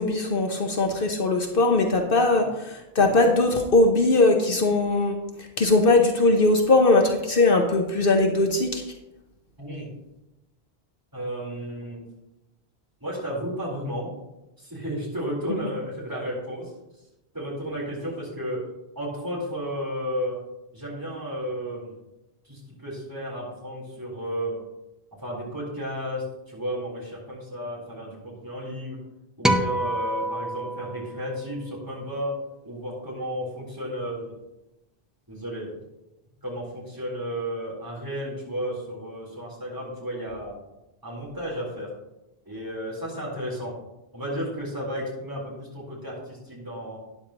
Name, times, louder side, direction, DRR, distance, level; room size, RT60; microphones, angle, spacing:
voice 1, 0.0-5.2 5.6-8.8, left 2 dB, 60° left, 4 dB, 1.1 m, -20 dB
voice 2, 9.6-9.9 11.1-12.0 13.0-14.1 14.6-16.7 17.3-18.7 18.9-20.4 20.7-21.9 22.4-24.6 25.2-29.0 29.4-32.4 32.6-34.3 35.3-35.8 36.4-40.6 41.0-41.9 42.5-43.7 44.1-47.0, equal, 20° right, -5 dB, 3.9 m, -33 dB
sound 1, 29.4-31.9, right 1 dB, ahead, 0.7 m, -27 dB
12.5 x 10.0 x 3.0 m, 0.94 s
omnidirectional pair, 1.0 m